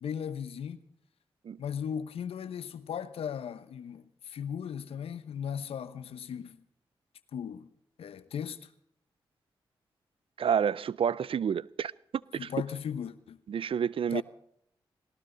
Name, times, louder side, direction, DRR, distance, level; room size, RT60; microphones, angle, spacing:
voice 1, 0.0-0.8 1.6-6.6 7.3-7.7 8.0-8.7 12.4-13.4 14.1-14.2, left 8 dB, 85° left, 1.0 m, -37 dB
voice 2, 10.4-11.9 12.3-12.5 13.5-14.2, right 8 dB, 70° right, 0.5 m, -29 dB
19.0 x 18.5 x 4.0 m
supercardioid pair, 45°, 10 cm